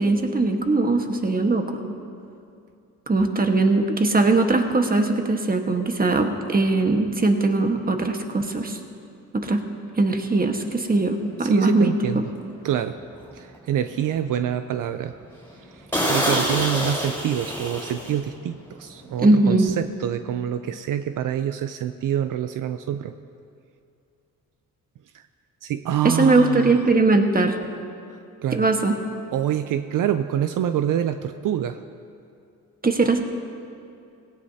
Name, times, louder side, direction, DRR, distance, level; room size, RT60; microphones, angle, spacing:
voice 1, 0.0-1.8 3.1-8.8 9.3-9.6 10.0-11.9 19.2-19.7 26.0-27.6 28.5-29.0 32.8-33.2, right 3 dB, 25° right, 4 dB, 1.4 m, -20 dB
sound 1, 10.7-10.8 11.3-11.6 12.1-12.2 12.5-12.6 13.1-13.7 14.1-14.2 14.6-14.7 15.0-15.1 15.5-15.6 15.9-18.5 18.7-18.9, equal, 5° left, 4.2 m, -26 dB
voice 2, 11.4-12.2 12.6-13.0 13.3-15.1 15.6-23.1 25.1-25.3 25.6-26.9 28.4-28.7 29.3-31.8, right 10 dB, 70° right, 9 dB, 0.6 m, -26 dB
19.0 x 17.0 x 2.8 m, 2.5 s
cardioid pair, 85°, 33 cm